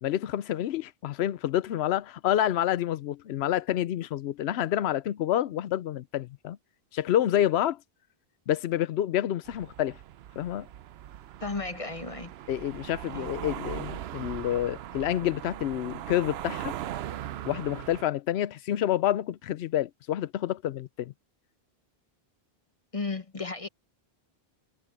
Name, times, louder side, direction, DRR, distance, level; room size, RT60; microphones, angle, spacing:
voice 1, 0.0-6.6 6.9-7.8 8.5-10.0 10.4-10.7 12.5-16.7 17.4-21.1, left 12 dB, 85° left, 0.9 m, -28 dB
sound 1, 9.5-18.0, right 12 dB, 80° right, 0.8 m, -39 dB
voice 2, 11.4-12.3 13.1-13.3 22.9-23.7, left 3 dB, 35° left, 1.1 m, -34 dB
omnidirectional pair, 1.0 m